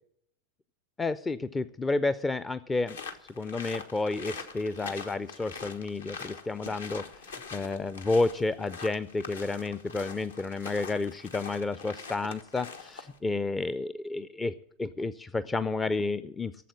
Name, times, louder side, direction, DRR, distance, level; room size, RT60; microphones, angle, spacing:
voice 1, 1.0-3.0 3.4-7.0 7.5-14.5 14.8-16.5, left 3 dB, 15° left, 15 dB, 0.4 m, -30 dB
sound 1, 2.9-13.2, left 4 dB, 70° left, 1.4 m, -43 dB
12.5 x 7.6 x 9.8 m, 0.68 s
figure-of-eight pair, 90°, 0 cm